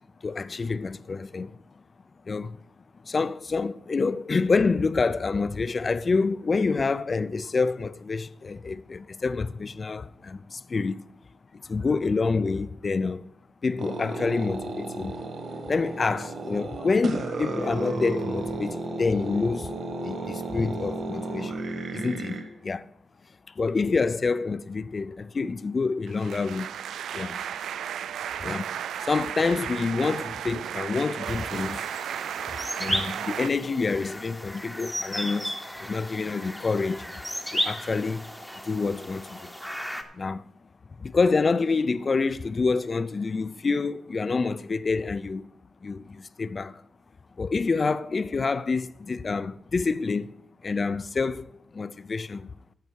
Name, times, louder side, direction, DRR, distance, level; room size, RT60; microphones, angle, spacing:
voice 1, 0.2-1.6 2.3-2.6 3.0-11.0 11.5-13.3 13.6-15.1 15.7-21.7 21.9-22.9 23.5-26.7 27.1-27.4 28.3-31.9 32.8-37.1 37.5-38.3 38.6-39.5 40.1-40.5 41.0-45.5 45.8-46.8 47.4-50.3 50.6-52.5, left 4 dB, 25° left, 0.3 m, -27 dB
sound 1, 13.8-22.4, right 2 dB, 45° right, 1.5 m, -33 dB
sound 2, 26.1-33.5, right 9 dB, 75° right, 0.3 m, -34 dB
sound 3, 31.2-40.0, equal, ahead, 0.8 m, -35 dB
14.0 x 5.4 x 6.3 m
wide cardioid pair, 165°, 0 cm